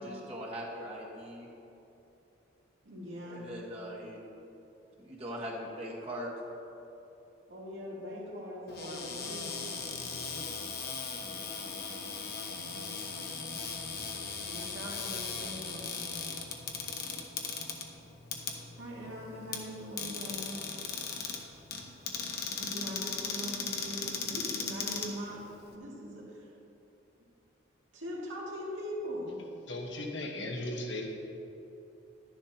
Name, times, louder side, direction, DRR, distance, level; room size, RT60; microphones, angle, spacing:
voice 1, 0.0-1.5 3.2-4.2 5.0-6.3, equal, 30° right, -4 dB, 1.4 m, -40 dB
voice 2, 2.8-3.5 7.5-9.5 14.4-16.0 18.8-20.5 22.6-25.5 25.7-26.5 27.9-29.4, equal, 85° right, -5 dB, 2.4 m, -41 dB
Cupboard open or close, 8.7-25.7, left 5 dB, 50° left, 0.9 m, -38 dB
voice 3, 29.7-31.1, left 2 dB, 70° left, 1 dB, 1.3 m, -37 dB
12.0 x 10.5 x 2.9 m, 2.9 s
head